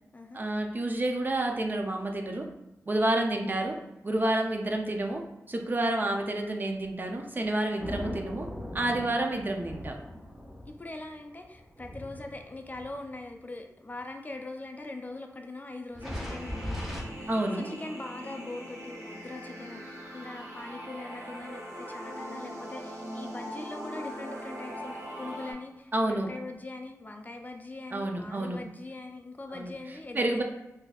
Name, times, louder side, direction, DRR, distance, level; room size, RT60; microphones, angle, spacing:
voice 1, 0.3-2.5 2.9-3.8 4.0-5.2 5.5-8.5 8.7-10.0 17.3-17.7 25.9-26.3 27.9-28.6 29.5-29.7 30.1-30.4, right 1 dB, 35° right, 2 dB, 0.5 m, -29 dB
sound 1, 7.8-13.3 13.9-14.0 15.9-17.0, left 1 dB, 5° right, 0.7 m, -39 dB
voice 2, 10.7-30.4, left 2 dB, 30° left, 4 dB, 0.4 m, -42 dB
sound 2, 16.0-25.5, equal, 60° right, 1.2 m, -41 dB
4.0 x 2.6 x 2.3 m, 0.97 s
wide cardioid pair, 90°, 6 cm